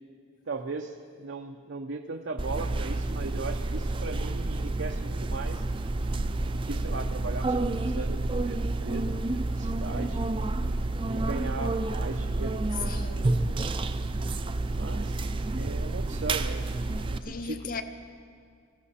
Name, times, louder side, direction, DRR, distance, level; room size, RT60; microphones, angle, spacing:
voice 1, 0.5-5.6 6.6-10.2 11.0-13.1 13.5-13.6 14.7-15.3 15.5-17.6, right 3 dB, 75° right, 0.7 m, -38 dB
sound 1, 2.4-17.2, right 2 dB, 25° right, 0.4 m, -29 dB
voice 2, 12.8-13.4 17.2-17.8, left 4 dB, 45° left, 0.8 m, -37 dB
19.5 x 15.0 x 4.2 m
head